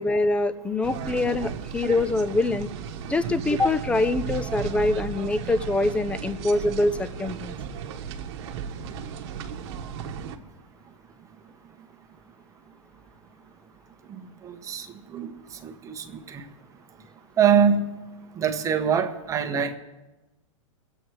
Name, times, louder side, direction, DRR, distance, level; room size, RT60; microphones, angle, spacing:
voice 1, 0.0-2.7 3.1-7.6, left 2 dB, 5° left, 12 dB, 0.5 m, -24 dB
sound 1, 0.8-10.4, right 7 dB, 55° right, 1.2 m, -35 dB
voice 2, 14.4-14.9 15.1-15.3 15.6-16.4 17.4-17.9 18.4-19.8, right 7 dB, 20° right, 6 dB, 1.2 m, -23 dB
22.0 x 8.0 x 4.8 m, 1.1 s
hypercardioid pair, 135°, 17 cm